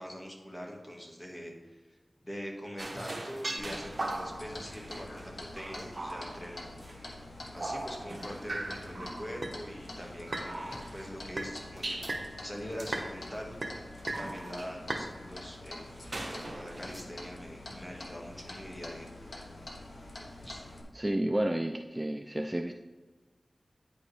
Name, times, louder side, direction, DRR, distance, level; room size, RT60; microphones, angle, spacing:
voice 1, 0.0-1.8 2.2-6.7 7.5-12.0 12.4-13.6 14.0-19.1 20.4-20.7, equal, 15° left, 0 dB, 1.7 m, -43 dB
sound 1, 2.8-7.1 7.4-11.1 11.4-12.4 12.7-13.1 13.5-15.1 15.9-17.0, right 2 dB, 60° right, 1.0 m, -39 dB
Clock, 3.6-20.8, left 1 dB, 85° left, 1.2 m, -46 dB
voice 2, 20.9-22.7, right 1 dB, 20° right, 5 dB, 0.4 m, -31 dB
9.4 x 5.3 x 3.3 m, 1.3 s
wide cardioid pair, 55°, 0 cm